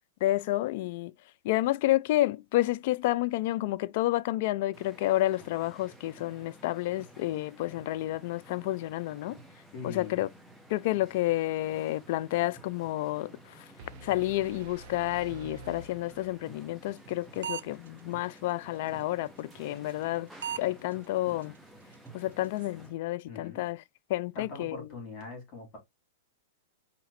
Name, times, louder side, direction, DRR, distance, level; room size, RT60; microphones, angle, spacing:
voice 1, 0.2-1.1 1.4-9.4 9.8-10.3 10.7-13.7 14.0-20.3 20.6-21.5 22.1-23.8 24.1-24.9, left 16 dB, 55° left, 0.3 m, -30 dB
sound 1, 4.7-23.0, right 1 dB, ahead, 1.0 m, -53 dB
voice 2, 9.7-10.3 23.3-23.7 24.3-25.8, left 4 dB, 40° left, 3.3 m, -42 dB
sound 2, 13.8-16.8, right 2 dB, 50° right, 0.8 m, -48 dB
sound 3, 17.0-17.1 17.4-17.9 18.4-18.5 19.9-20.1 20.4-20.6 20.9-21.0 21.4-21.5 21.9-22.0 22.3-22.7, right 9 dB, 80° right, 0.3 m, -35 dB
4.9 x 2.8 x 2.9 m
hypercardioid pair, 130°, 0 cm